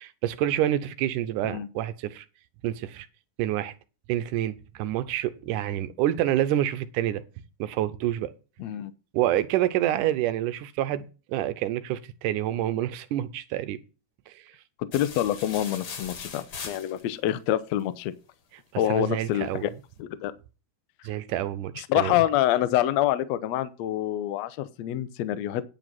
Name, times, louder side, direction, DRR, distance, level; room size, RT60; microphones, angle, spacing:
voice 1, 0.0-2.3 2.6-3.1 3.4-3.7 4.1-7.2 7.6-8.3 9.1-13.8 14.3-14.4 18.9-19.6 21.0-22.1, right 12 dB, 75° right, 2.1 m, -27 dB
voice 2, 8.6-8.9 14.8-18.1 18.8-19.7 20.0-20.3 21.8-25.6, left 12 dB, 85° left, 1.5 m, -26 dB
sound 1, 14.9-17.3, left 5 dB, 50° left, 2.0 m, -39 dB
10.0 x 5.2 x 7.6 m
omnidirectional pair, 4.0 m